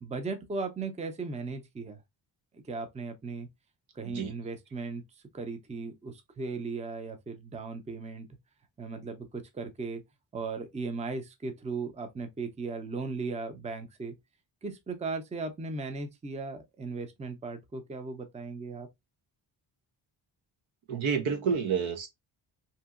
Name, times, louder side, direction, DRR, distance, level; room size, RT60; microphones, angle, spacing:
voice 1, 0.0-2.0 2.5-3.5 4.0-5.0 5.3-8.3 8.8-10.0 10.3-14.1 14.6-18.9, right 4 dB, 15° right, 0.5 m, -37 dB
voice 2, 20.9-22.1, right 6 dB, 85° right, 0.9 m, -29 dB
2.8 x 2.7 x 2.4 m
cardioid pair, 100°, 46 cm